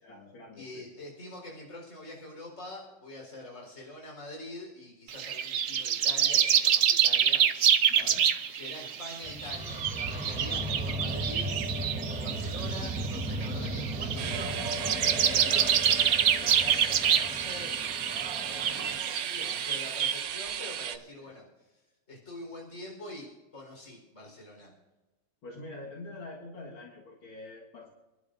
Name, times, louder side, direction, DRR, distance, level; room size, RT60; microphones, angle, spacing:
voice 1, 0.0-0.9 7.9-8.3 21.2-21.3 25.4-27.9, left 2 dB, 70° left, -3 dB, 2.6 m, -45 dB
voice 2, 0.5-7.4 8.5-11.5 11.9-15.9 16.4-17.7 18.4-21.4 22.1-24.7, left 1 dB, 35° left, -1 dB, 4.8 m, -45 dB
sound 1, 5.1-20.2, right 9 dB, 85° right, 0.7 m, -27 dB
sound 2, 9.2-19.0, right 1 dB, 5° right, 0.8 m, -36 dB
sound 3, 14.2-21.0, right 8 dB, 60° right, 0.9 m, -35 dB
29.5 x 11.5 x 2.6 m, 1.1 s
omnidirectional pair, 2.3 m